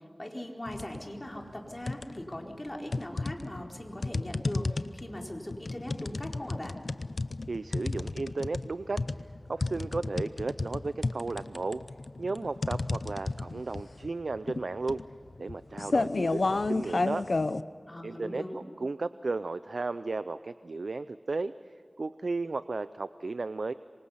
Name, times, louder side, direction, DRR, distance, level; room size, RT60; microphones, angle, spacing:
voice 1, 0.2-6.8 17.9-18.6, left 1 dB, 30° left, 0 dB, 4.3 m, -40 dB
sound 1, 0.7-1.0 1.4-2.4 2.9-17.6, left 3 dB, 80° left, 0.6 m, -32 dB
voice 2, 7.5-9.0 9.5-11.8 12.2-15.0 15.4-17.3 18.0-21.5 22.0-23.7, right 3 dB, 85° right, 13 dB, 0.5 m, -34 dB
27.0 x 24.5 x 5.7 m, 2.3 s
wide cardioid pair, 45°, 0 cm